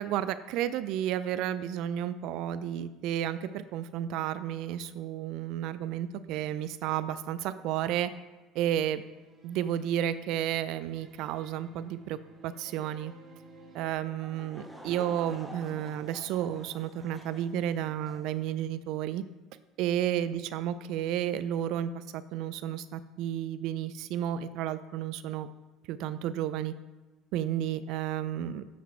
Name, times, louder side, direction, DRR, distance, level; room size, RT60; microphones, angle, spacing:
voice 1, 0.0-8.1 8.6-9.0 9.4-12.2 12.4-13.1 13.7-19.2 19.8-25.5 25.9-26.7 27.3-28.6, right 11 dB, 70° right, 14 dB, 0.4 m, -32 dB
sound 1, 8.9-13.9, right 2 dB, 40° right, 1.8 m, -55 dB
Laughter / Crowd, 14.2-18.4, right 1 dB, 5° left, 1.1 m, -48 dB
8.6 x 4.0 x 4.4 m, 1.2 s
hypercardioid pair, 80°, 0 cm